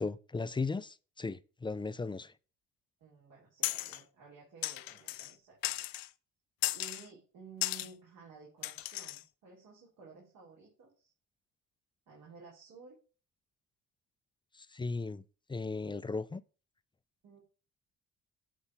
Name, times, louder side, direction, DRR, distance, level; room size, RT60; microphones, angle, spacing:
voice 1, 0.0-2.3 14.5-15.2 15.5-16.4, left 3 dB, 15° left, 0.4 m, -36 dB
voice 2, 3.0-5.8 6.7-11.1 12.1-13.0 17.2-17.4, right 5 dB, 75° right, 3.0 m, -54 dB
sound 1, 3.6-4.0 4.6-5.3 5.6-6.1 6.6-7.0 7.6-7.9 8.6-9.2, left 18 dB, 85° left, 0.6 m, -35 dB
8.1 x 3.4 x 5.7 m
supercardioid pair, 80°, 34 cm